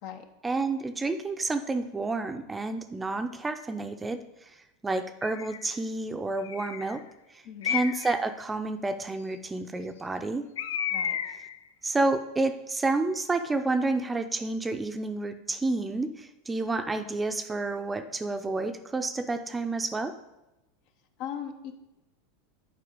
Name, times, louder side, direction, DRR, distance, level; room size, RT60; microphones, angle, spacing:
voice 1, 0.4-7.0 7.3-10.5 11.8-20.1, right 3 dB, 15° right, 8 dB, 0.6 m, -30 dB
Bird, 5.2-5.7 6.4-7.0 7.6-8.2 10.6-11.6, left 8 dB, 85° left, 0.4 m, -32 dB
voice 2, 7.4-7.7 10.9-11.2 21.2-21.7, left 9 dB, 60° left, 6 dB, 0.9 m, -38 dB
7.6 x 4.8 x 5.2 m, 0.95 s
hypercardioid pair, 100°, 0 cm